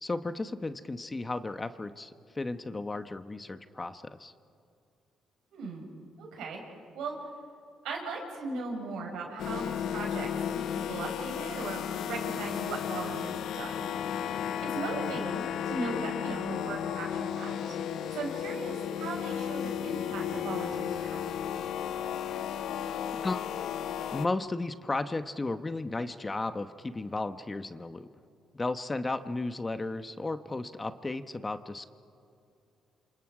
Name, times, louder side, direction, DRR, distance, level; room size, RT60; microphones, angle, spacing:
voice 1, 0.0-4.3 23.2-23.4 24.1-28.1 28.5-31.9, left 2 dB, 20° left, 10 dB, 1.0 m, -34 dB
voice 2, 5.5-5.9 6.2-6.6 6.9-7.1 7.8-13.7 14.6-17.7 18.1-21.3, right 3 dB, 85° right, 0 dB, 6.2 m, -38 dB
sound 1, 9.4-24.3, left 9 dB, 75° left, 0.7 m, -34 dB
29.0 x 26.5 x 5.0 m, 2.7 s
cardioid pair, 90°, 0 cm